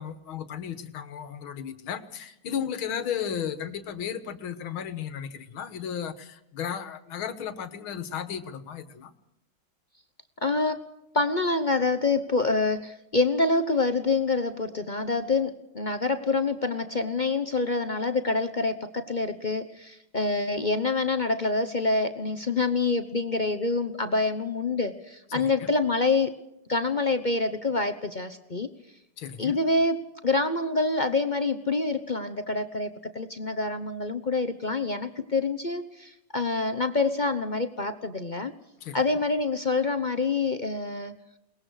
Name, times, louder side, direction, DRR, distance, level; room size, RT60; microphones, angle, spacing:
voice 1, 0.0-9.1 25.3-25.7 29.2-29.6 38.8-39.0, left 8 dB, 75° left, 2.2 m, -34 dB
voice 2, 10.4-10.8 11.1-26.3 26.7-28.7 29.4-38.5 38.9-41.1, left 3 dB, 45° left, 0.6 m, -26 dB
22.0 x 20.0 x 6.4 m
omnidirectional pair, 2.3 m